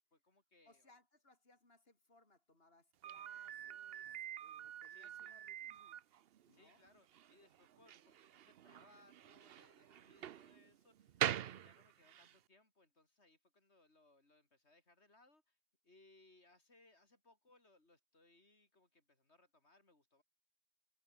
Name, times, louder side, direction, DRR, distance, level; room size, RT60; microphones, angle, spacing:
voice 1, 0.1-1.0 4.9-5.4 6.5-15.6 15.8-20.2, left 2 dB, 85° left, 4.9 m, -69 dB
voice 2, 0.7-4.1 4.4-6.0 6.5-6.8, left 2 dB, 65° left, 4.9 m, -69 dB
Slam, 3.0-12.4, right 10 dB, 65° right, 0.9 m, -45 dB
omnidirectional pair, 1.1 m